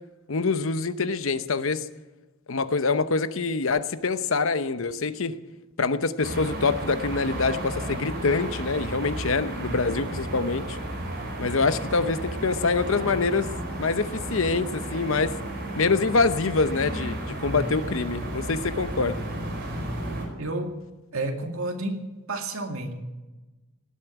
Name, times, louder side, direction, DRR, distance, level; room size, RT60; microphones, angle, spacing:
voice 1, 0.3-1.9 2.5-5.4 5.8-10.8 11.4-13.5 13.8-15.3 15.8-19.2, left 4 dB, 60° left, 12 dB, 0.8 m, -25 dB
sound 1, 6.2-20.3, right 1 dB, 45° right, 4.6 m, -33 dB
voice 2, 20.3-20.7 21.1-22.0 22.3-22.9, right 2 dB, 65° right, 4 dB, 2.2 m, -30 dB
18.0 x 8.4 x 9.1 m, 1.1 s
head